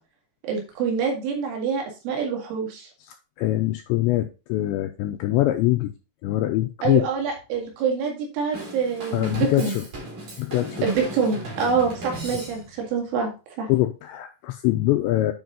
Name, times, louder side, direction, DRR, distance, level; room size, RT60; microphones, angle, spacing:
voice 1, 0.4-2.9 6.8-9.8 10.8-13.3 13.6-13.7, right 5 dB, 75° right, 1 dB, 4.5 m, -26 dB
voice 2, 3.0-5.9 6.2-7.1 9.1-9.9 10.4-10.9 12.3-12.4 13.7-15.3, left 16 dB, 85° left, 6 dB, 2.6 m, -23 dB
Drum kit / Drum, 8.5-12.9, right 2 dB, 40° right, 4.0 m, -37 dB
9.4 x 5.2 x 4.0 m, 0.30 s
omnidirectional pair, 5.7 m